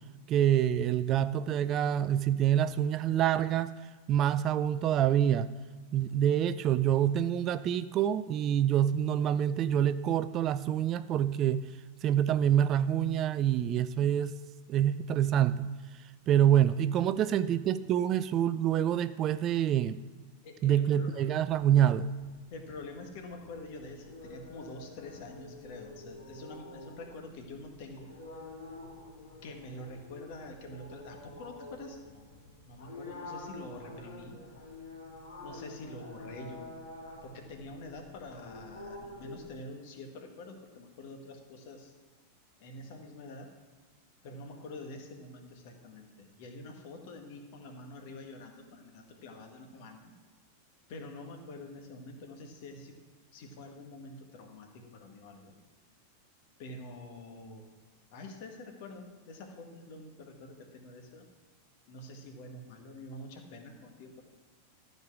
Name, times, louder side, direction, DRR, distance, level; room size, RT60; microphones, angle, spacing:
voice 1, 0.3-3.7 4.1-5.5 5.9-11.7 12.0-14.4 14.7-15.7 16.3-20.0 20.6-22.1, right 10 dB, 35° right, 14 dB, 0.4 m, -26 dB
voice 2, 20.4-21.3 21.8-21.9 22.5-28.1 29.4-32.3 32.7-34.4 35.4-36.7 37.2-41.9 42.6-43.5 44.2-50.1 50.9-53.0 53.3-55.6 56.6-57.7 58.1-61.2 61.9-64.2, left 2 dB, 50° left, 4 dB, 1.8 m, -46 dB
sound 1, 21.3-39.5, left 2 dB, 70° left, 3.4 m, -48 dB
13.5 x 5.3 x 6.1 m, 1.4 s
figure-of-eight pair, 90°, 0 cm